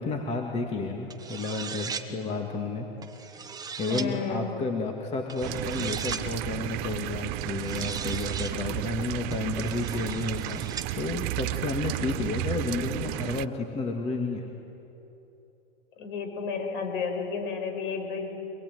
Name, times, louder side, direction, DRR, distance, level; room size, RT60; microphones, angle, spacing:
voice 1, 0.0-2.9 3.1-3.4 3.8-14.5, left 3 dB, 20° left, 3 dB, 2.0 m, -31 dB
sound 1, 1.1-2.1 3.0-4.1 5.3-6.3 7.4-8.5 9.3-10.9, right 6 dB, 10° right, 1.2 m, -38 dB
voice 2, 3.9-4.5 16.0-18.3, left 5 dB, 55° left, 5 dB, 5.7 m, -32 dB
sound 2, 5.4-13.5, right 16 dB, 30° right, 0.6 m, -33 dB
24.5 x 20.5 x 9.4 m, 3.0 s
hypercardioid pair, 135°, 31 cm